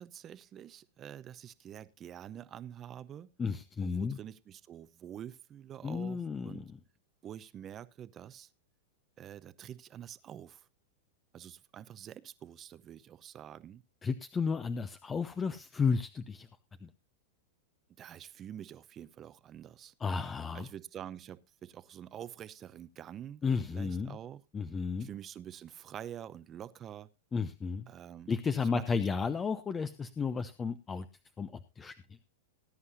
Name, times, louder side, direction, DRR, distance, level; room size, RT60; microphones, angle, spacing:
voice 1, 0.0-3.3 3.8-6.6 7.2-8.5 9.2-10.7 11.3-13.8 18.0-19.9 20.5-23.4 23.7-24.4 25.0-27.1 27.9-28.3 28.6-29.0, right 10 dB, 30° right, 15 dB, 0.7 m, -47 dB
voice 2, 3.4-4.2 5.8-6.8 14.0-16.5 16.8-16.9 20.0-20.7 23.4-24.2 24.5-25.1 27.3-27.9 28.3-31.1 31.4-31.9, left 5 dB, 20° left, 11 dB, 0.7 m, -33 dB
19.5 x 9.7 x 2.7 m, 0.26 s
hypercardioid pair, 125°, 0 cm